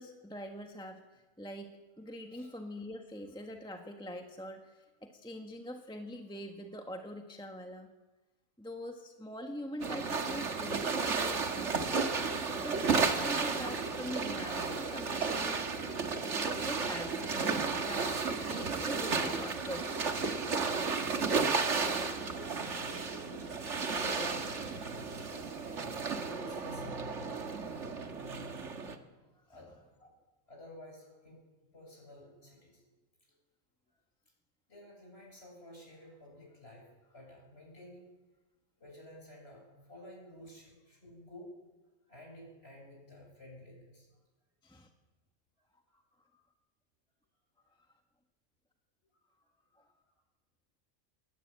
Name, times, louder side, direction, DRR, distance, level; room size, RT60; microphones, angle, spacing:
voice 1, 0.0-1.7 2.0-7.9 8.6-12.1 12.6-15.7 16.2-18.1 18.4-20.1 44.6-44.9 45.7-45.8 46.2-46.4 49.7-49.9, equal, 5° left, 3 dB, 1.4 m, -44 dB
sound 1, 9.8-29.0, right 4 dB, 60° right, 1.9 m, -33 dB
voice 2, 22.2-24.7 25.3-28.6 29.3-30.1 30.5-31.5 31.7-32.9 33.3-33.4 34.7-38.1 38.8-41.5 42.1-44.1 45.9-46.0, left 1 dB, 50° left, 0 dB, 8.4 m, -52 dB
21.5 x 18.5 x 8.8 m, 1.2 s
omnidirectional pair, 1.4 m